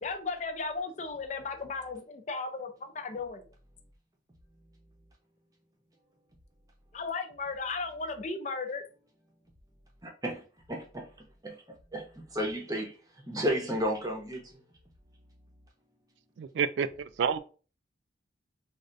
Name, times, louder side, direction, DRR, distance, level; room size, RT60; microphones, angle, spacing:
voice 1, 0.0-3.5 6.9-8.8, left 4 dB, 40° left, 0.4 m, -35 dB
voice 2, 10.0-10.4 10.7-11.1 11.4-11.6 11.9-12.9 13.3-14.6, equal, 20° right, 0.7 m, -32 dB
voice 3, 16.4-17.4, right 7 dB, 80° right, 0.3 m, -29 dB
3.2 x 2.4 x 2.5 m
head